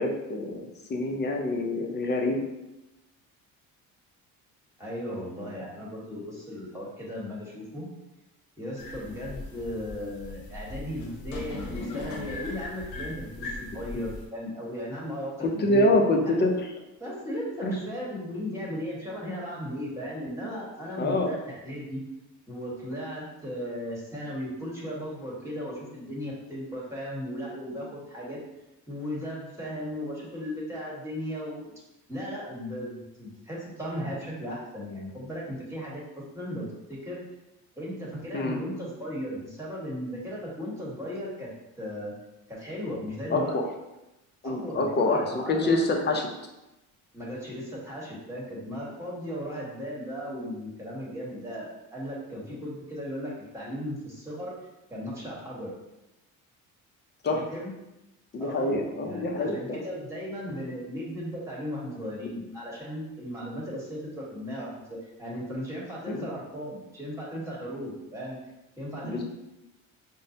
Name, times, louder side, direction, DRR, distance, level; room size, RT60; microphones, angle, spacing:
voice 1, 0.0-2.4 15.4-16.5 17.6-17.7 21.0-21.3 38.3-38.6 43.3-43.6 44.4-46.3 57.2-57.4 58.3-59.8 66.1-66.3 69.0-69.2, left 2 dB, 30° left, 1 dB, 0.6 m, -26 dB
voice 2, 4.8-7.9 8.6-16.5 17.0-22.0 22.5-28.4 28.9-31.7 32.1-37.2 37.8-41.5 41.8-42.1 42.5-43.6 44.4-45.7 47.1-54.5 54.9-55.7 57.3-57.7 58.4-68.4 68.8-69.2, equal, 10° right, -5 dB, 1.2 m, -36 dB
sound 1, 8.8-14.3, left 2 dB, 70° left, 0.9 m, -39 dB
5.3 x 2.1 x 2.6 m, 0.96 s
cardioid pair, 110°, 35 cm